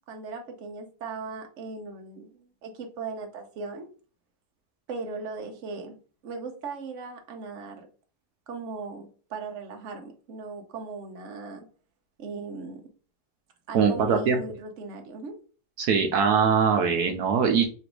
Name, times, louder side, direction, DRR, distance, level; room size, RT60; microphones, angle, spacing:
voice 1, 0.1-3.9 4.9-6.0 6.2-7.9 8.5-11.7 12.2-12.8 13.7-15.4, right 4 dB, 55° right, 4 dB, 1.1 m, -38 dB
voice 2, 13.7-14.4 15.8-17.6, right 6 dB, 70° right, 4 dB, 1.2 m, -22 dB
4.0 x 2.5 x 4.6 m, 0.37 s
omnidirectional pair, 1.7 m